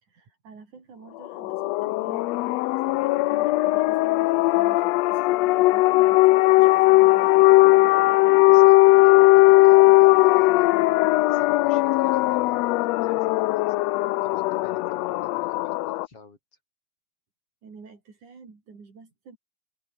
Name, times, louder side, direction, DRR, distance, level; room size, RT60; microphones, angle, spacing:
voice 1, 0.0-7.3 17.6-19.4, right 5 dB, 85° right, 6.5 m, -49 dB
sound 1, 1.3-16.1, left 19 dB, 80° left, 1.6 m, -18 dB
voice 2, 8.5-11.0 11.2-13.8 14.2-16.4, left 3 dB, 50° left, 6.7 m, -51 dB
open air
omnidirectional pair, 3.4 m